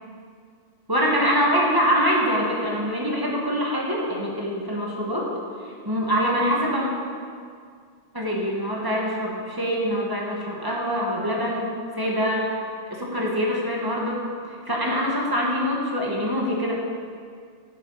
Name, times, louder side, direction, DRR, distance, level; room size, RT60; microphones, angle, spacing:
voice 1, 0.9-5.3 5.8-6.9 8.1-14.2 14.7-16.7, equal, 15° right, -3 dB, 1.0 m, -24 dB
10.5 x 6.6 x 5.5 m, 2.1 s
omnidirectional pair, 2.4 m